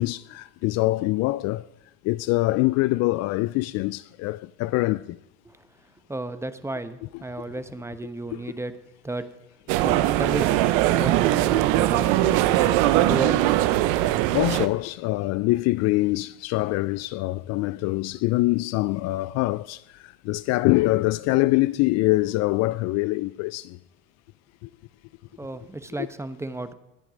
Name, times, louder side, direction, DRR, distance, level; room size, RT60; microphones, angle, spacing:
voice 1, 0.0-1.7 2.0-5.2 8.3-8.4 14.3-23.8, left 20 dB, 50° left, 0.4 m, -24 dB
voice 2, 6.1-8.7 9.0-9.3 9.8-10.7 10.9-13.5 25.4-26.7, right 2 dB, 10° right, 1.0 m, -33 dB
sound 1, 9.7-14.7, right 14 dB, 65° right, 0.9 m, -21 dB
18.5 x 9.0 x 5.1 m
hypercardioid pair, 80°, 33 cm